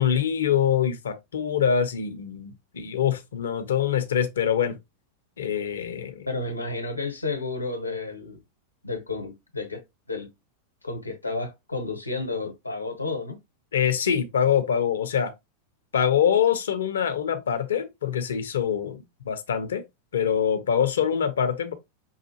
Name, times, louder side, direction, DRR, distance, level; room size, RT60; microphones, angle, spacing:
voice 1, 0.0-4.8 5.4-6.3 13.7-15.3 15.9-19.8 20.1-21.7, left 8 dB, 65° left, 0.7 m, -24 dB
voice 2, 6.3-8.4 8.8-9.8 10.1-10.3 10.8-13.4, left 3 dB, 85° left, 1.0 m, -31 dB
5.6 x 2.4 x 2.8 m
figure-of-eight pair, 90°, 0 cm